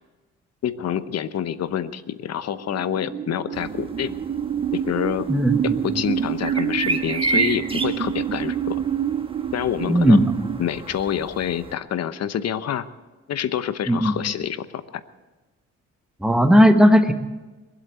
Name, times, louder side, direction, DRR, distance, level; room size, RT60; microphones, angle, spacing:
voice 1, 0.6-4.1 4.7-5.3 5.8-8.8 9.5-10.2 10.6-12.9 13.3-15.0, left 9 dB, 55° left, 13 dB, 0.9 m, -27 dB
sound 1, 2.5-10.6, right 9 dB, 35° right, 0.5 m, -27 dB
sound 2, 3.5-11.7, right 4 dB, 15° right, 1.4 m, -32 dB
voice 2, 5.3-5.7 9.9-10.5 13.9-14.1 16.2-17.1, equal, ahead, 6 dB, 1.3 m, -16 dB
22.0 x 8.1 x 8.0 m, 1.2 s
cardioid pair, 90°, 30 cm